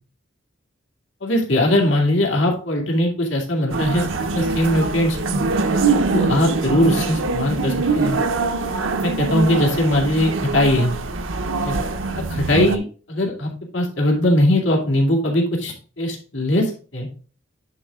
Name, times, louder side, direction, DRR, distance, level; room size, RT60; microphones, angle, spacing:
voice 1, 1.2-5.4 6.0-8.2 9.0-10.9 11.6-11.8 12.3-12.8 13.1-16.7 16.9-17.1, left 1 dB, 65° left, 0 dB, 2.4 m, -20 dB
sound 1, 3.7-12.8, right 3 dB, 85° right, 0.9 m, -23 dB
9.8 x 4.5 x 3.6 m, 0.38 s
head